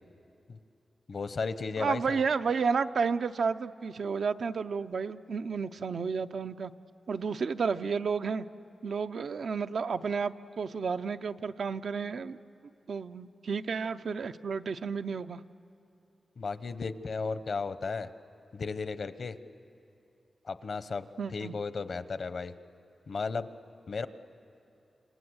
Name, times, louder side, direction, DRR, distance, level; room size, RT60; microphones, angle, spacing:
voice 1, 1.1-2.2 16.4-18.1 18.5-19.4 20.4-22.5 23.1-23.5 23.9-24.1, left 4 dB, 60° left, 12 dB, 0.8 m, -34 dB
voice 2, 1.8-6.7 7.1-8.4 8.8-12.4 12.9-15.4 21.2-21.5, right 5 dB, 75° right, 10 dB, 0.6 m, -31 dB
27.0 x 27.0 x 7.9 m, 2.7 s
wide cardioid pair, 110°, 0 cm